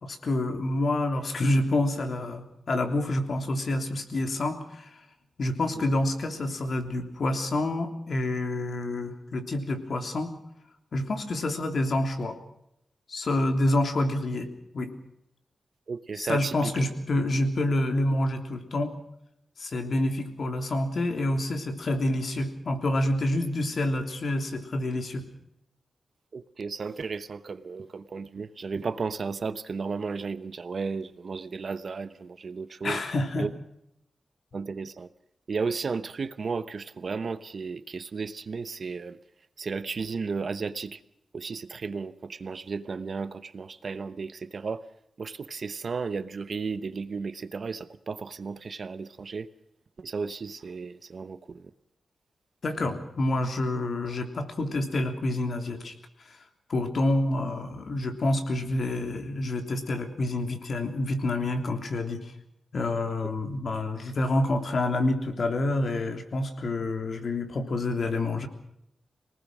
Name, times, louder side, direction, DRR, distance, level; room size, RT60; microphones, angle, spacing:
voice 1, 0.0-4.9 5.4-10.3 10.9-12.4 13.1-14.5 14.7-14.9 16.1-18.9 19.6-25.3 32.8-33.5 52.6-55.9 56.7-62.3 62.7-68.5, left 1 dB, 50° left, 6 dB, 3.2 m, -28 dB
voice 2, 15.9-16.4 26.3-32.1 32.4-33.0 33.4-33.5 34.5-35.1 35.5-39.2 39.6-40.9 41.3-42.1 42.4-44.8 45.2-49.5 50.0-51.4, right 4 dB, 50° right, 13 dB, 0.9 m, -34 dB
25.5 x 19.0 x 6.2 m, 0.78 s
wide cardioid pair, 135°, 0 cm